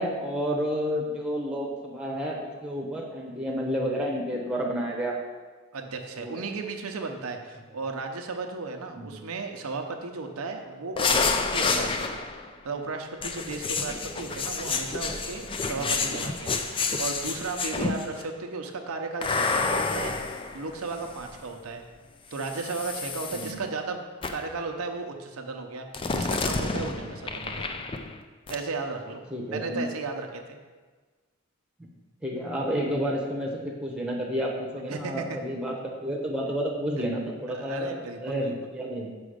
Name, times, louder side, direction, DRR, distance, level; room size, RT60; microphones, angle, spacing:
voice 1, 0.0-5.2 6.2-6.4 8.9-9.1 15.7-16.0 23.3-23.6 29.3-29.8 32.2-37.9 38.2-39.1, equal, 5° right, -2 dB, 0.9 m, -30 dB
voice 2, 5.7-12.2 12.6-20.2 20.5-21.8 22.3-24.0 24.3-25.9 26.1-27.7 28.5-29.2 29.5-30.6 34.9-35.4 37.0-37.1 37.5-38.5, right 3 dB, 90° right, 4 dB, 0.7 m, -35 dB
sound 1, 11.0-12.5 13.2-18.2 19.2-21.4 22.3-23.5 24.2-24.6 25.9-28.2 28.5-28.6, left 4 dB, 25° left, 0.3 m, -29 dB
6.2 x 4.9 x 5.0 m, 1.4 s
head